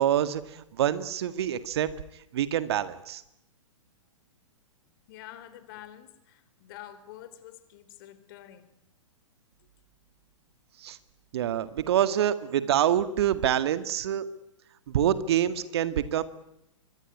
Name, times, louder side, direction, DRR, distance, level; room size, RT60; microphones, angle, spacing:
voice 1, 0.0-1.9 2.3-3.2 10.8-11.0 11.3-14.3 14.9-16.2, right 10 dB, 50° right, 13 dB, 1.9 m, -26 dB
voice 2, 5.1-8.7, left 12 dB, 45° left, 13 dB, 3.7 m, -47 dB
25.0 x 23.5 x 9.8 m, 0.84 s
figure-of-eight pair, 115°, 17 cm